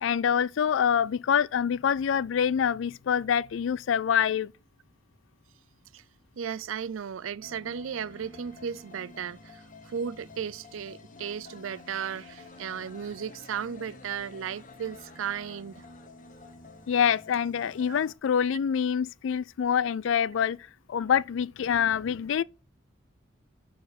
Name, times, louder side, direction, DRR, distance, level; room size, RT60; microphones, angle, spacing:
voice 1, 0.0-4.5 16.9-20.6 20.9-22.4, left 8 dB, 75° left, 0.3 m, -26 dB
voice 2, 6.4-15.9, right 7 dB, 85° right, 0.4 m, -35 dB
sound 1, 7.4-18.1, left 3 dB, 40° left, 1.0 m, -49 dB
7.1 x 5.0 x 6.4 m
head